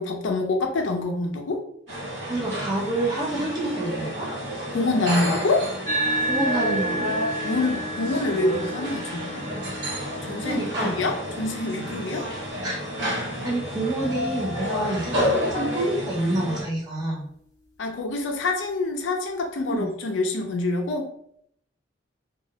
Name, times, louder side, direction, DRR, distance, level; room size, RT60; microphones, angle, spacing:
voice 1, 0.0-1.6 4.7-5.7 7.4-9.5 10.1-12.3 17.8-21.1, left 2 dB, 85° left, 3 dB, 0.5 m, -26 dB
sound 1, 1.9-16.6, equal, 65° right, 1.1 m, -30 dB
voice 2, 2.3-4.3 6.3-7.2 10.4-10.9 12.6-12.8 13.4-17.2 19.7-19.9, right 1 dB, 20° right, -2 dB, 0.6 m, -27 dB
sound 2, 5.9-14.6, right 1 dB, 20° left, 0.7 m, -32 dB
2.3 x 2.0 x 2.8 m, 0.68 s
head